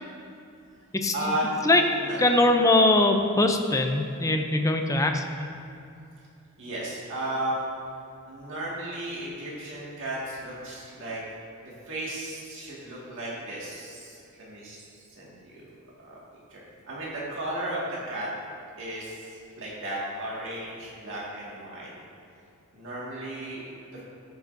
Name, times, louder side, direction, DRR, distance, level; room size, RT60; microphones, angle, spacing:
voice 1, 1.1-2.4 6.6-7.6 8.3-11.2 11.9-14.8 15.1-15.7 16.0-16.2 16.5-18.3 18.8-21.9 22.7-24.0, right 1 dB, 60° right, -6 dB, 2.0 m, -34 dB
voice 2, 2.2-5.2, left 2 dB, 15° left, 5 dB, 0.5 m, -21 dB
13.5 x 7.1 x 2.7 m, 2.6 s
head